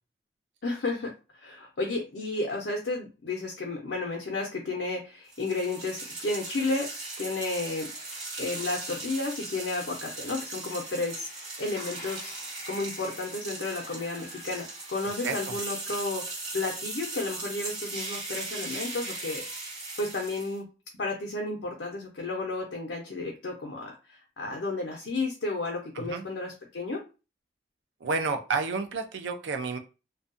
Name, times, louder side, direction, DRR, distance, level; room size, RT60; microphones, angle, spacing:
voice 1, 0.6-6.9 7.2-7.9 8.4-12.3 12.7-19.4 20.0-20.7 20.9-27.0, left 2 dB, 70° left, 1 dB, 0.5 m, -32 dB
sound 1, 5.3-20.6, right 2 dB, 65° right, 1.4 m, -38 dB
voice 2, 28.0-29.8, right 4 dB, 85° right, 7 dB, 0.5 m, -30 dB
2.6 x 2.2 x 2.5 m, 0.31 s
head